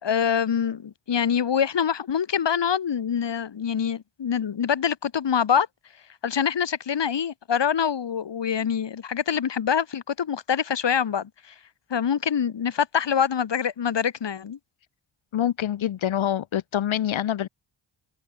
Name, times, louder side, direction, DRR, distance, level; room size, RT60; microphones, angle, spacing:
voice 1, 0.0-5.7 6.2-11.3 11.9-14.6, left 8 dB, 65° left, 2.3 m, -25 dB
voice 2, 15.3-17.5, left 11 dB, 85° left, 1.8 m, -25 dB
cardioid pair, 55°, 46 cm